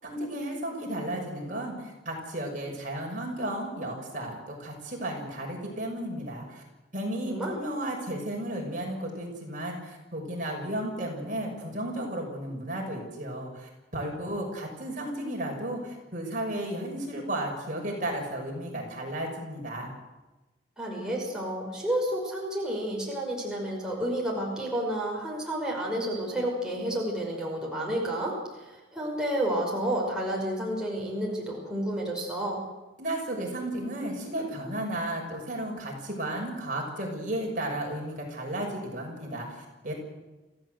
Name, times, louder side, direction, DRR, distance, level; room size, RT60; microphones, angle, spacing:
voice 1, 0.0-6.6 6.9-19.9 33.0-39.9, right 1 dB, 45° right, 0 dB, 6.3 m, -34 dB
voice 2, 7.2-7.6 20.8-32.6, right 1 dB, 5° right, -3 dB, 5.7 m, -30 dB
27.0 x 16.0 x 8.0 m, 1.1 s
head